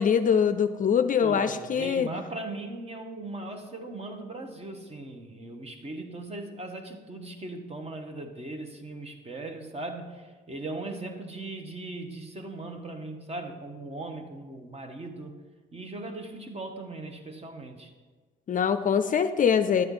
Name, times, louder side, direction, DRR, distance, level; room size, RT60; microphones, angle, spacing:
voice 1, 0.0-2.1 18.5-19.8, left 7 dB, 45° left, 10 dB, 0.5 m, -23 dB
voice 2, 1.2-15.4 15.7-17.9, right 2 dB, 30° right, 5 dB, 1.2 m, -38 dB
10.5 x 7.8 x 3.9 m, 1.4 s
cardioid pair, 90°, 20 cm